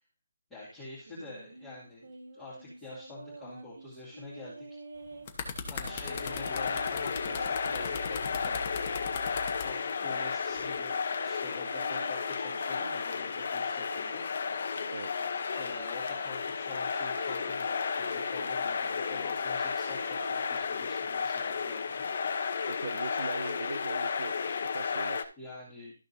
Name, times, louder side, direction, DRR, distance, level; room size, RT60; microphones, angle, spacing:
voice 1, 0.5-2.0 2.3-4.7 5.7-8.6 9.6-14.2 15.5-22.1 25.4-25.9, left 2 dB, 5° left, -12 dB, 2.3 m, -47 dB
sound 1, 1.1-5.3 5.7-9.4 9.9-14.2 14.7-18.4 18.9-20.6, right 2 dB, 70° right, 3.5 m, -48 dB
sound 2, 5.0-9.7 10.6-10.8, left 5 dB, 20° left, 1.0 m, -39 dB
sound 3, 5.7-25.2, left 5 dB, 40° left, 0.8 m, -33 dB
voice 2, 22.7-25.3, right 5 dB, 50° right, 14 dB, 0.4 m, -41 dB
13.0 x 6.5 x 2.7 m, 0.36 s
hypercardioid pair, 180°, 0 cm